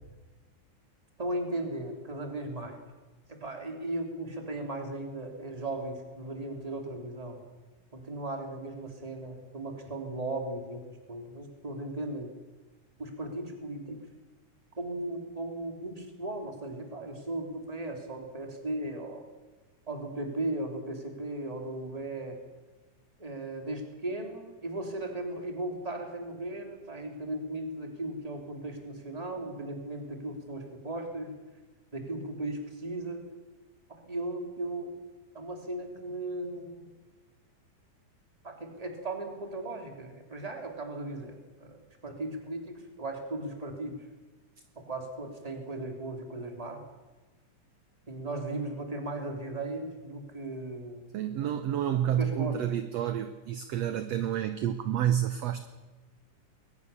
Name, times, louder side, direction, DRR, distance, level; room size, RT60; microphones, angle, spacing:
voice 1, 1.2-2.8 3.3-7.4 7.9-12.3 13.0-14.0 14.8-19.2 19.9-22.4 23.2-31.3 31.9-33.2 34.0-34.9 35.3-36.9 38.4-44.0 44.8-46.8 48.1-51.8 52.2-52.7, right 2 dB, 10° right, 3 dB, 2.8 m, -37 dB
voice 2, 51.1-55.7, right 10 dB, 70° right, 10 dB, 1.7 m, -29 dB
21.5 x 19.0 x 7.0 m, 1.2 s
omnidirectional pair, 3.8 m